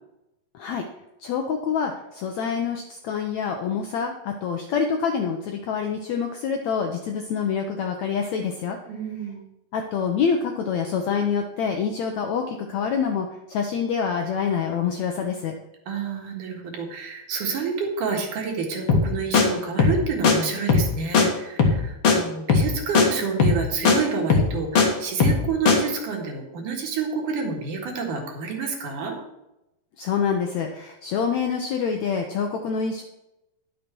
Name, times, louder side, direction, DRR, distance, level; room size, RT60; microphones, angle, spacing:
voice 1, 1.2-8.8 9.7-15.5 30.0-33.0, left 6 dB, 75° left, 4 dB, 1.7 m, -26 dB
voice 2, 8.9-9.4 15.9-29.2, right 5 dB, 65° right, 2 dB, 3.1 m, -29 dB
sound 1, 18.9-19.1 19.3-19.4 19.8-20.0 20.2-20.3 20.7-20.9 21.1-21.2 21.6-21.8 22.0-22.2 22.5-22.7 22.9-23.1 23.4-23.6 23.8-24.0 24.3-24.9 25.2-25.4 25.7-25.8, left 5 dB, 50° left, 2.0 m, -17 dB
11.0 x 6.7 x 6.1 m, 0.92 s
omnidirectional pair, 4.2 m